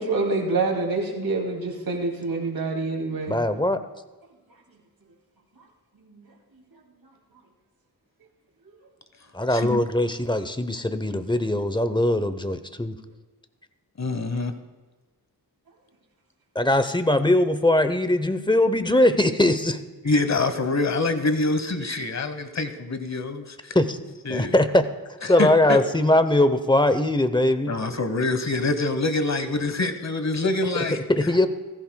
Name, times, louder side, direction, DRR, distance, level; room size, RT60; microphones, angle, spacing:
voice 1, 0.0-3.4 4.5-4.6 5.5-5.7 5.9-6.3 6.5-7.1, right 3 dB, 60° right, 0 dB, 2.5 m, -27 dB
voice 2, 3.3-3.8 9.3-13.0 16.5-19.8 23.7-24.0 24.3-24.8 25.2-27.7 30.7-30.8 31.1-31.5, left 1 dB, 10° left, 11 dB, 0.7 m, -21 dB
voice 3, 9.5-9.8 14.0-14.5 20.0-23.8 24.2-24.6 25.2-25.8 27.6-31.0, left 2 dB, 40° left, 10 dB, 1.2 m, -25 dB
15.5 x 14.5 x 2.3 m, 1.2 s
cardioid pair, 55°, 40 cm